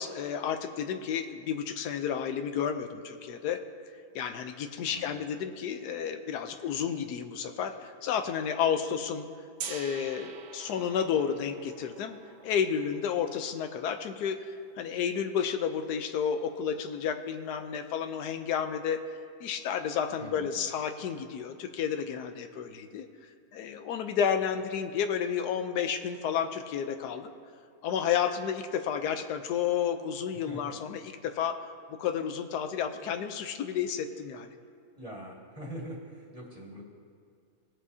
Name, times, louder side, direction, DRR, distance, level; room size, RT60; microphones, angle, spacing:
voice 1, 0.0-3.6 4.1-9.3 9.7-12.2 12.4-19.0 19.4-23.1 23.5-27.3 27.8-31.6 31.9-34.5, left 8 dB, 85° left, 8 dB, 1.2 m, -31 dB
voice 2, 4.9-5.2 20.2-20.5 30.3-30.7 34.9-36.8, equal, 25° right, -4 dB, 2.0 m, -43 dB
Gong, 9.6-15.5, right 7 dB, 80° right, 1.3 m, -47 dB
20.5 x 7.7 x 2.7 m, 2.3 s
omnidirectional pair, 1.7 m